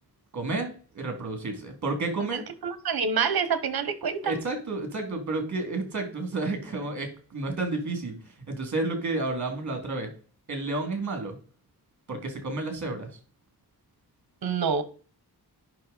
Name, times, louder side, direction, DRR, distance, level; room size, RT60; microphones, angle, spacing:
voice 1, 0.3-2.4 4.2-10.1 10.5-11.4 12.1-13.1, right 2 dB, 45° right, 2.5 m, -31 dB
voice 2, 2.3-4.4 14.4-14.8, right 6 dB, 65° right, 1.2 m, -27 dB
7.5 x 5.8 x 4.0 m
wide cardioid pair, 150°, 39 cm